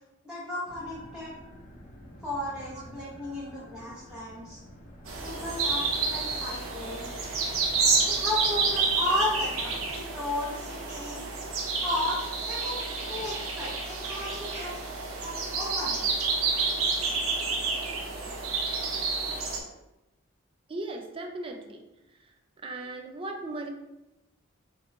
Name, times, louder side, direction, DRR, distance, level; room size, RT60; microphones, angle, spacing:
voice 1, 0.2-1.3 2.2-4.6 5.2-7.2 8.0-11.3 11.8-12.2 12.5-14.8 15.2-16.1, left 1 dB, 5° right, -10 dB, 0.9 m, -34 dB
sound 1, 0.6-9.9, equal, 40° left, 0.8 m, -49 dB
sound 2, 5.1-19.6, right 4 dB, 80° right, 0.7 m, -29 dB
voice 2, 20.7-21.8 22.2-22.3 22.6-23.7, right 2 dB, 25° right, 2 dB, 0.4 m, -37 dB
3.8 x 3.0 x 3.1 m, 0.95 s
head